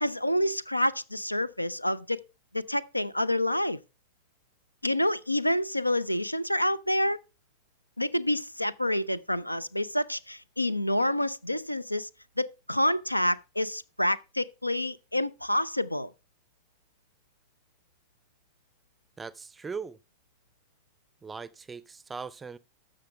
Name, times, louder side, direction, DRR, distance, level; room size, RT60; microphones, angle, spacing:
voice 1, 0.0-2.2 2.5-3.8 4.8-7.2 8.0-12.1 12.4-16.1, left 1 dB, 85° left, 0.4 m, -28 dB
voice 2, 19.2-20.0 21.2-22.6, right 5 dB, 15° right, 0.5 m, -39 dB
13.0 x 6.3 x 3.3 m
figure-of-eight pair, 90°, 0 cm